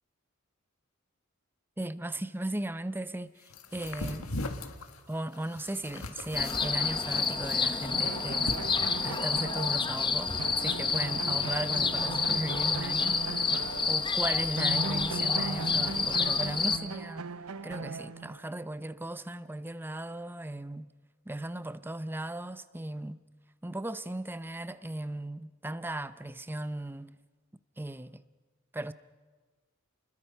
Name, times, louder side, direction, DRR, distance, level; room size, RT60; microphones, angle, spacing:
voice 1, 1.8-4.3 5.1-8.5 9.0-13.4 13.9-17.2 17.6-20.9 21.3-23.2 23.6-27.1 27.8-28.2 28.7-28.9, right 1 dB, 10° right, 0.6 m, -37 dB
sound 1, 3.5-9.3, left 2 dB, 75° left, 1.6 m, -40 dB
sound 2, 6.3-16.8, left 5 dB, 25° left, 1.0 m, -29 dB
sound 3, 7.9-14.3 14.6-18.5, right 4 dB, 90° right, 0.8 m, -39 dB
29.5 x 21.0 x 5.7 m
head